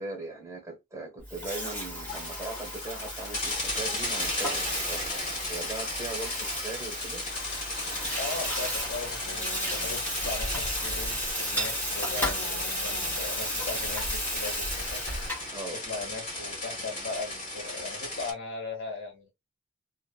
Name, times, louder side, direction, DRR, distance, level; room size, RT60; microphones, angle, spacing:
voice 1, 0.0-5.0 5.5-7.2 15.5-15.8, right 2 dB, 15° right, 1.1 m, -39 dB
Water tap faucet / Sink (filling or washing), 1.2-15.5, equal, 10° left, 1.3 m, -34 dB
sound 1, 2.1-18.3, left 2 dB, 35° left, 1.3 m, -35 dB
sound 2, 7.3-15.3, left 1 dB, 80° left, 1.0 m, -41 dB
voice 2, 8.2-15.0 15.7-19.3, left 3 dB, 60° left, 1.6 m, -38 dB
2.9 x 2.4 x 2.2 m
head